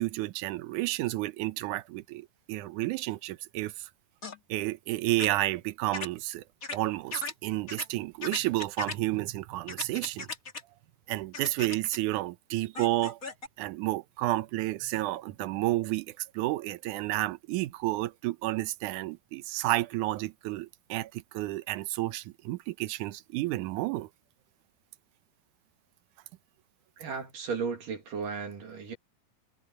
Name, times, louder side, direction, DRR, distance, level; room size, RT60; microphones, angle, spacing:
voice 1, 0.0-3.9 4.5-6.4 6.7-10.3 11.1-13.2 13.6-24.1, right 17 dB, 80° right, 1.8 m, -31 dB
sound 1, 4.2-4.4 5.2-5.3 5.9-6.1 6.6-6.8 7.1-7.3 7.7-7.9 8.2-9.0 9.7-10.6 11.3-12.0 12.7-13.5, left 4 dB, 25° left, 2.1 m, -37 dB
voice 2, 27.0-29.0, right 5 dB, 60° right, 3.9 m, -35 dB
omnidirectional pair, 4.5 m